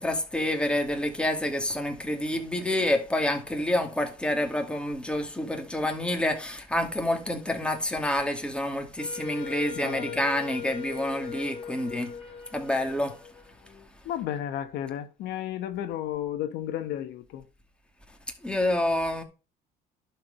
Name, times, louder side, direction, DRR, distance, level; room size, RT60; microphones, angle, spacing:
voice 1, 0.0-12.1 12.5-13.2 18.4-19.2, left 1 dB, 5° left, 2.4 m, -28 dB
Wind instrument woodwind instrument, 9.0-13.9, left 8 dB, 35° left, 3.7 m, -40 dB
voice 2, 9.8-10.2 14.0-17.4, left 11 dB, 80° left, 1.2 m, -33 dB
11.5 x 4.7 x 5.4 m
cardioid pair, 110°, 17 cm